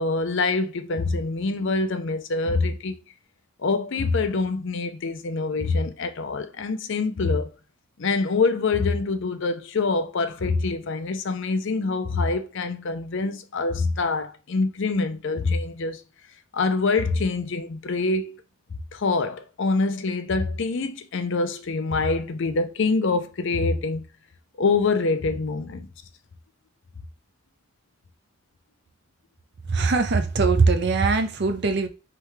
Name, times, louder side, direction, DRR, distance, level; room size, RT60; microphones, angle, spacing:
voice 1, 0.0-3.0 3.6-7.5 8.0-16.0 16.5-18.4 18.9-24.0 24.6-25.9, left 3 dB, 55° left, 0.5 m, -25 dB
voice 2, 29.7-31.9, right 4 dB, 50° right, 0.6 m, -21 dB
4.5 x 3.4 x 3.1 m
head